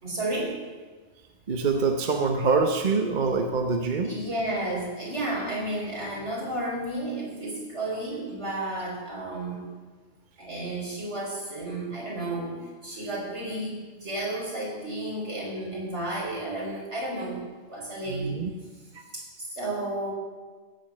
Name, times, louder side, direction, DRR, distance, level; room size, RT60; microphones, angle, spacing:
voice 1, 0.0-0.6 4.0-9.6 10.4-17.4 17.7-18.3 19.1-20.1, right 1 dB, 55° right, -4 dB, 4.4 m, -32 dB
voice 2, 1.5-4.2 18.1-18.5 18.9-19.0, right 4 dB, 40° right, 4 dB, 0.9 m, -25 dB
15.5 x 7.1 x 7.4 m, 1.4 s
omnidirectional pair, 1.4 m